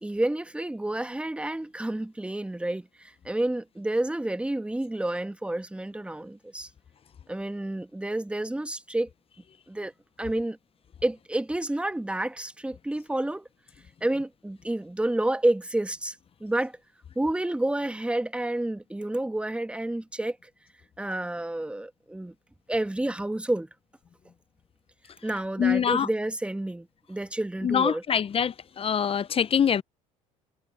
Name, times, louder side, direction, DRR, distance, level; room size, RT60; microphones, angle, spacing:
voice 1, 0.0-6.7 7.3-9.1 9.7-9.9 10.2-10.6 11.0-13.5 14.0-16.1 16.4-16.8 17.1-20.4 21.0-22.3 22.7-23.7 25.2-28.0, right 1 dB, 5° right, 1.4 m, -29 dB
voice 2, 25.6-26.1 27.6-29.8, left 8 dB, 30° left, 0.9 m, -24 dB
hypercardioid pair, 70°, 18 cm